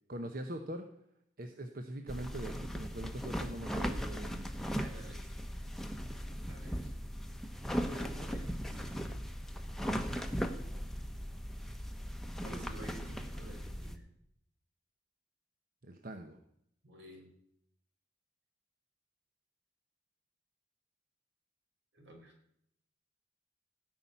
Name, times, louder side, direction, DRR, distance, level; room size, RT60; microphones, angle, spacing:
voice 1, 0.1-0.8 1.4-4.5 15.8-16.4, right 1 dB, 45° right, 5 dB, 0.9 m, -42 dB
sound 1, 2.1-14.0, equal, ahead, 0.9 m, -38 dB
voice 2, 4.8-5.7 6.5-6.9 7.8-9.0 12.4-14.1 16.8-17.3 21.9-22.3, right 1 dB, 70° right, 1 dB, 4.6 m, -51 dB
16.5 x 5.7 x 9.5 m, 0.75 s
head